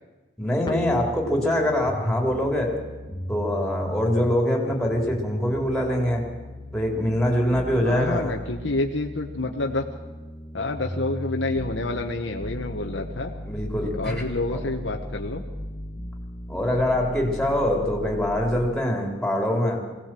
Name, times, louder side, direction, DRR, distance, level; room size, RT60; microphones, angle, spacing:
voice 1, 0.4-2.8 3.3-6.3 6.7-8.4 13.0-13.1 13.4-14.3 14.5-14.6 16.5-19.8, left 1 dB, 5° left, 0 dB, 3.5 m, -24 dB
sound 1, 0.7-18.7, equal, 25° left, 1.4 m, -36 dB
voice 2, 7.8-9.8 10.5-13.3 14.0-15.4, left 2 dB, 75° left, 3 dB, 1.2 m, -28 dB
21.5 x 17.0 x 7.7 m, 1.3 s
head